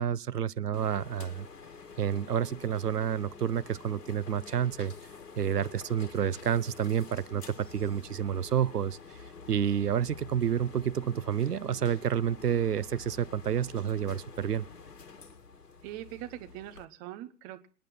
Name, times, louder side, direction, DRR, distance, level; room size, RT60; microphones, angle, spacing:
voice 1, 0.0-1.5 2.0-4.9 5.4-9.0 9.5-14.6, right 9 dB, 75° right, 0.9 m, -29 dB
sound 1, 0.7-16.9, left 5 dB, 70° left, 2.3 m, -48 dB
voice 2, 15.8-17.7, right 14 dB, 15° right, 0.9 m, -42 dB
27.0 x 9.2 x 5.6 m
figure-of-eight pair, 130°, 48 cm